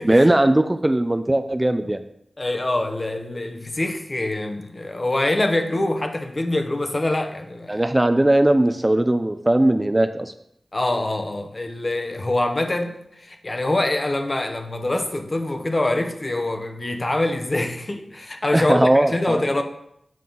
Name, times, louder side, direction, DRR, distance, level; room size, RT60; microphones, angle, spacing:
voice 1, 0.0-2.0 7.7-10.3 18.5-19.5, right 1 dB, 20° right, 8 dB, 0.4 m, -19 dB
voice 2, 2.4-7.8 10.7-19.6, left 2 dB, 35° left, 6 dB, 0.9 m, -24 dB
7.5 x 5.5 x 3.8 m, 0.74 s
wide cardioid pair, 75°, 0 cm